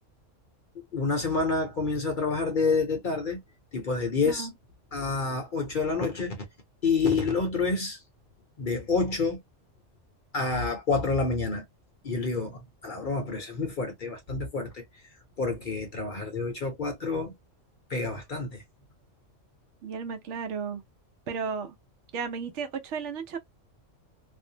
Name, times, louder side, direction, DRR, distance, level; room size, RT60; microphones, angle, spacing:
voice 1, 0.9-3.4 3.7-4.5 4.9-6.4 6.8-8.0 8.6-9.4 10.3-11.6 12.0-14.8 15.4-17.3 17.9-18.6, left 4 dB, 50° left, 0.7 m, -28 dB
voice 2, 19.8-20.8 21.3-21.8 22.1-23.4, right 6 dB, 70° right, 0.8 m, -34 dB
2.6 x 2.0 x 2.6 m
omnidirectional pair, 1.3 m